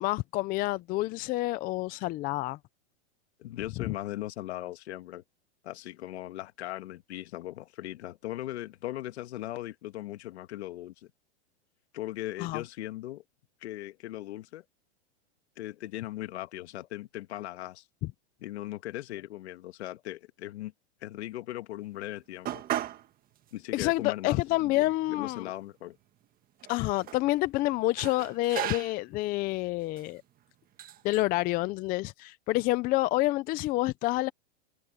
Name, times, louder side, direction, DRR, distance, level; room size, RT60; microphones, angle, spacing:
voice 1, 0.0-2.6 3.8-3.9 12.4-12.6 23.7-25.5 26.7-30.2 31.0-34.3, left 18 dB, 25° left, 0.6 m, -28 dB
voice 2, 3.4-5.2 5.6-11.1 11.9-13.2 13.6-14.6 15.6-17.8 18.4-20.7 21.0-22.6 23.5-26.0, left 15 dB, 70° left, 1.9 m, -39 dB
sound 1, 22.5-23.1 23.4-23.5 24.3-24.4 24.8-25.7 26.6-27.2 28.0-29.1 29.9-30.1 30.8-31.2, right 12 dB, 25° right, 1.6 m, -37 dB
supercardioid pair, 145°, 33 cm